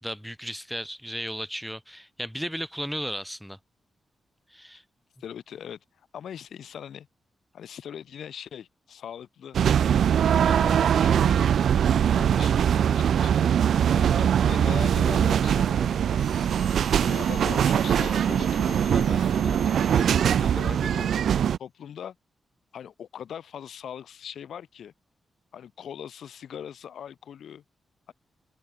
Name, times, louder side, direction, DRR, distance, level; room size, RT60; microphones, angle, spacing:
voice 1, 0.0-3.6 4.5-4.8, equal, ahead, 1.6 m, -35 dB
voice 2, 5.2-5.8 6.1-7.1 7.5-9.6 10.5-11.6 12.1-13.5 13.9-16.3 17.0-21.1 21.6-22.2 22.7-24.9 25.5-27.6 28.1-28.2, left 9 dB, 85° left, 1.9 m, -40 dB
sound 1, 9.5-21.6, right 9 dB, 85° right, 0.8 m, -22 dB
sound 2, 16.2-21.1, left 6 dB, 50° left, 1.9 m, -47 dB
wide cardioid pair, 150°, 0 cm